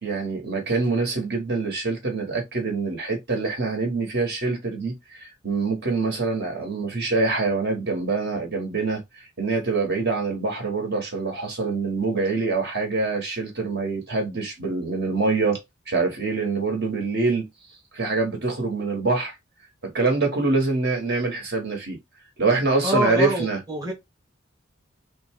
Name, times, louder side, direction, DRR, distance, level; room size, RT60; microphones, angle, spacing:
voice 1, 0.0-15.6 15.9-17.4 17.9-19.3 19.8-22.0 22.4-23.6, right 3 dB, 55° right, 1.5 m, -25 dB
voice 2, 22.8-23.9, equal, 20° right, 1.0 m, -25 dB
3.7 x 2.3 x 3.6 m
head